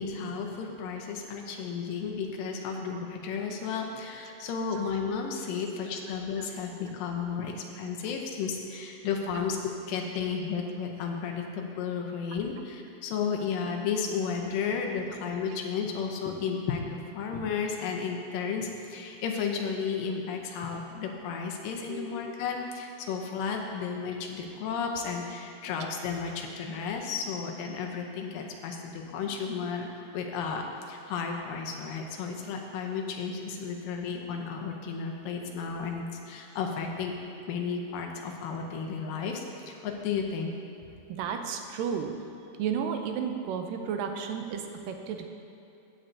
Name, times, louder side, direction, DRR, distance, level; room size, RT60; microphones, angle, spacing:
voice 1, 0.0-37.2 37.5-40.5, left 6 dB, 80° left, 2 dB, 2.5 m, -33 dB
voice 2, 41.1-42.1 42.6-45.3, right 7 dB, 85° right, 5 dB, 2.2 m, -33 dB
15.0 x 7.7 x 2.7 m, 2.9 s
omnidirectional pair, 3.9 m